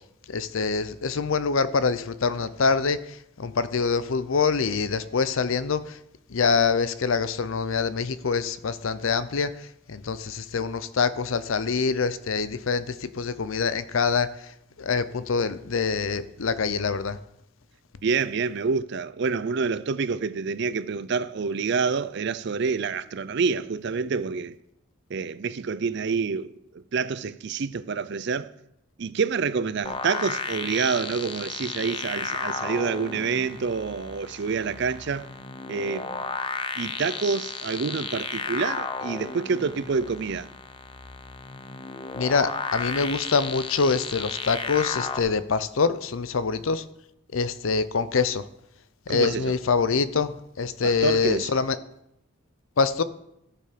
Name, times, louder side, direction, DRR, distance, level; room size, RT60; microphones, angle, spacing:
voice 1, 0.3-6.0 6.3-14.3 14.8-17.2 42.1-46.8 47.3-48.4 49.1-51.8 52.8-53.0, left 5 dB, 75° left, 0.6 m, -25 dB
voice 2, 18.0-24.6 25.1-28.5 29.0-35.3 35.7-36.3 36.8-40.5 49.1-49.5 50.8-51.5, right 5 dB, 55° right, 0.5 m, -27 dB
sound 1, 29.8-45.2, left 5 dB, 25° left, 0.6 m, -33 dB
14.0 x 6.9 x 5.1 m
head